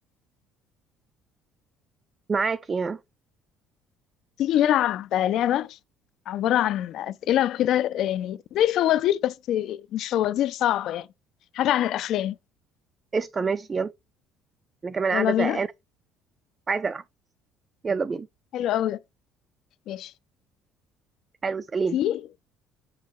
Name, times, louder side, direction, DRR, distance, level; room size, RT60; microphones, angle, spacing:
voice 1, 2.3-3.0 13.1-13.9 14.8-15.7 16.7-17.0 17.8-18.3 21.4-22.0, right 5 dB, 20° right, 0.3 m, -26 dB
voice 2, 4.4-5.8 6.3-11.1 11.5-12.4 15.1-15.6 18.5-19.0 19.9-20.1 21.9-22.2, left 12 dB, 50° left, 0.4 m, -24 dB
6.3 x 5.6 x 3.1 m
cardioid pair, 175°, 0 cm